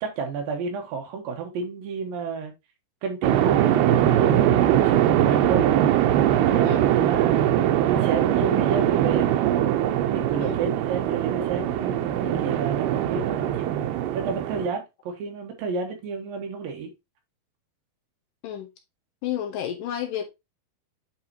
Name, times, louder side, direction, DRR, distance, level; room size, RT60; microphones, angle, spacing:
voice 1, 0.0-2.5 3.0-5.7 6.3-7.5 7.9-9.3 10.1-16.9, right 5 dB, 75° right, 2.8 m, -31 dB
sound 1, 3.2-14.7, right 12 dB, 90° right, 2.7 m, -21 dB
voice 2, 19.2-20.3, left 10 dB, 70° left, 2.3 m, -31 dB
8.6 x 4.2 x 2.8 m
omnidirectional pair, 4.4 m